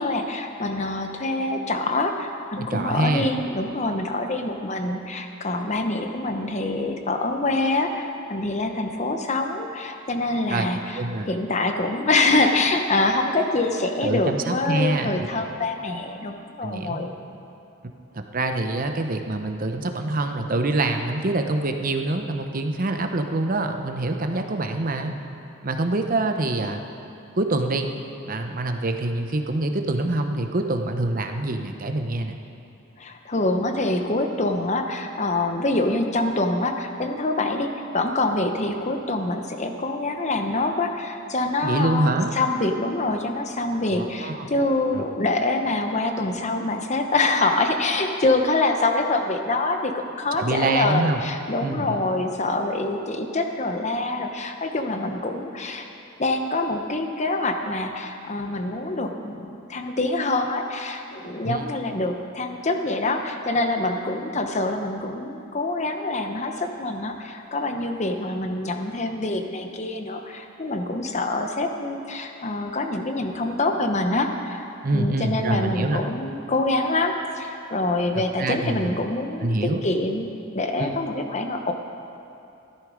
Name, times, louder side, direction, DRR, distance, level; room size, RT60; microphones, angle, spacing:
voice 1, 0.0-11.0 11.3-17.1 33.0-55.9 56.2-74.6 74.9-79.5 79.8-80.3 80.5-81.7, left 2 dB, 35° left, 5 dB, 1.0 m, -25 dB
voice 2, 2.6-3.3 10.5-11.3 14.0-15.5 16.6-17.0 18.1-25.1 25.6-26.8 27.4-27.9 28.3-32.4 41.6-42.3 43.9-44.5 44.9-45.0 50.3-51.2 51.6-52.0 61.4-61.6 74.8-76.0 78.1-79.0 79.4-79.8 80.8-81.0, right 2 dB, 45° right, 6 dB, 0.8 m, -25 dB
14.5 x 12.5 x 5.1 m, 2.8 s
head